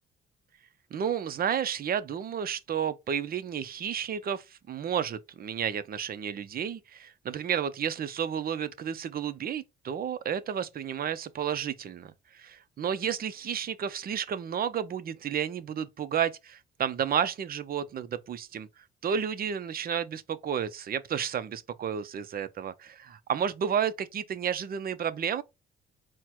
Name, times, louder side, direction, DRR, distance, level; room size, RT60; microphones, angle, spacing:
voice 1, 0.9-18.7 19.0-25.4, right 8 dB, 50° right, 0.6 m, -31 dB
4.4 x 2.2 x 4.5 m
cardioid pair, 90°, 20 cm